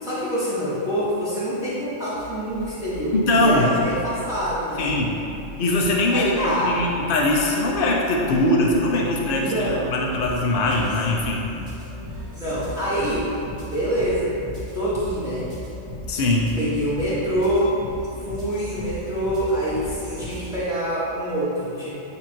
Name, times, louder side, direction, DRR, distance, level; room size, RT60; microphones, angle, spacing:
voice 1, 0.0-5.0 6.1-6.8 9.4-9.9 12.3-13.3 13.7-14.4 14.7-15.5 16.6-17.8 18.2-21.9, equal, 5° right, -10 dB, 1.3 m, -25 dB
sound 1, 2.2-20.6, left 1 dB, 45° right, 1.8 m, -37 dB
voice 2, 3.1-3.7 4.8-5.2 5.6-6.3 6.6-11.4 16.1-16.5, left 1 dB, 50° left, -1 dB, 0.9 m, -21 dB
8.8 x 2.9 x 4.5 m, 2.9 s
omnidirectional pair, 1.4 m